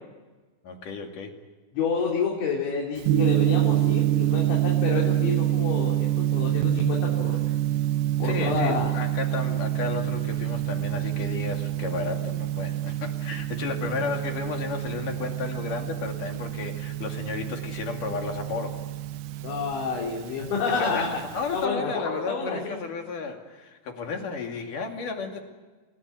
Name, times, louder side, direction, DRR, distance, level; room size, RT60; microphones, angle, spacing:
voice 1, 0.6-1.4 8.2-18.8 20.8-25.4, left 4 dB, 50° left, 3 dB, 3.5 m, -33 dB
voice 2, 1.7-7.4 8.2-8.9 14.0-14.1 19.4-21.1 21.5-22.8, left 5 dB, 70° left, -2 dB, 5.6 m, -29 dB
Gong, 3.0-21.6, right 13 dB, 85° right, 1.9 m, -27 dB
29.5 x 18.5 x 9.5 m, 1.3 s
omnidirectional pair, 5.6 m